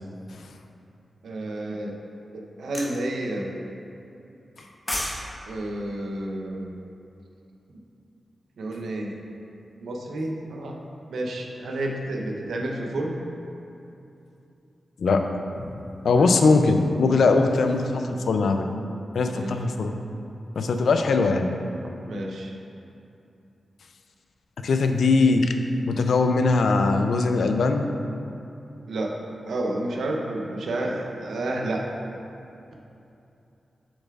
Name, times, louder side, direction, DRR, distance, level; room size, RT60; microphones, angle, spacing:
voice 1, 1.2-1.9 2.3-3.5 5.5-6.7 8.6-9.1 9.8-10.7 11.1-13.2 16.1-16.3 19.3-19.6 22.1-22.5 28.9-29.1 29.5-32.2, right 1 dB, 90° right, 0 dB, 0.8 m, -30 dB
sound 1, 2.7-3.0 4.6-5.2 5.5-5.7, left 1 dB, 20° left, 1.1 m, -29 dB
voice 2, 16.0-18.7 19.1-19.9 20.6-21.5 24.6-25.6 25.9-27.9, left 3 dB, 85° left, 6 dB, 0.4 m, -21 dB
7.9 x 6.7 x 2.4 m, 2.7 s
cardioid pair, 60°, 0 cm